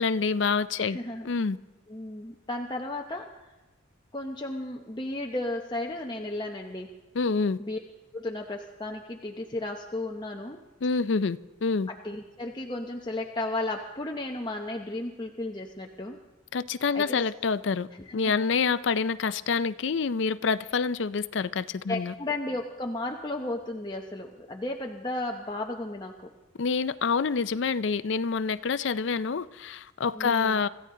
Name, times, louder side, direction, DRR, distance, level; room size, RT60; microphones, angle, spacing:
voice 1, 0.0-1.0 1.2-1.6 7.1-7.6 10.8-11.9 16.5-17.9 18.1-22.1 26.6-30.7, left 5 dB, 60° left, 0.5 m, -27 dB
voice 2, 0.8-1.3 1.9-3.4 4.1-6.9 7.6-7.8 8.1-10.6 11.9-16.2 16.9-17.2 17.9-18.3 21.9-26.3 30.1-30.6, left 2 dB, 20° left, 0.8 m, -34 dB
26.0 x 14.0 x 3.8 m
head